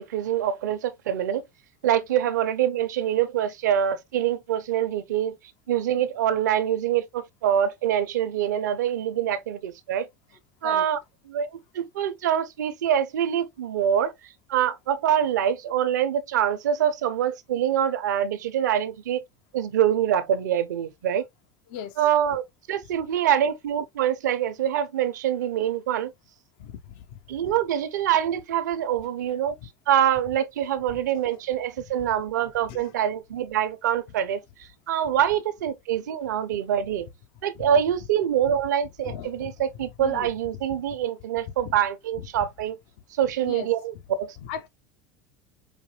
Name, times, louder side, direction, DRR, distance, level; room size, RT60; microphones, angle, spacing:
voice 1, 0.0-1.4 1.8-5.4 5.7-10.1 10.6-11.0 11.3-14.1 14.5-19.2 19.5-21.2 22.0-22.4 22.7-26.1 27.3-29.5 29.9-34.4 34.9-37.1 37.4-42.8 43.2-44.3, right 10 dB, 90° right, 0.7 m, -25 dB
voice 2, 39.0-39.5 40.0-40.3 41.6-41.8 43.4-43.7 44.4-44.7, left 8 dB, 70° left, 0.8 m, -37 dB
5.1 x 2.2 x 3.2 m
hypercardioid pair, 95°, 9 cm